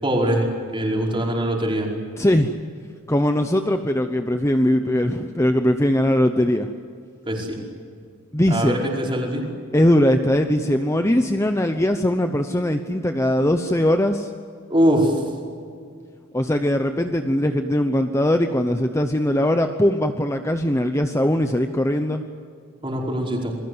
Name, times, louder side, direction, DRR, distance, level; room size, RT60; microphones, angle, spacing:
voice 1, 0.0-0.5 0.7-1.9 7.3-7.6 8.5-9.4 14.7-15.2 22.8-23.6, equal, 25° right, -1 dB, 5.1 m, -22 dB
voice 2, 2.2-2.6 3.1-6.7 8.3-8.8 9.7-14.3 16.3-22.2, left 1 dB, 15° left, 6 dB, 0.9 m, -20 dB
29.0 x 21.0 x 8.0 m, 2.2 s
head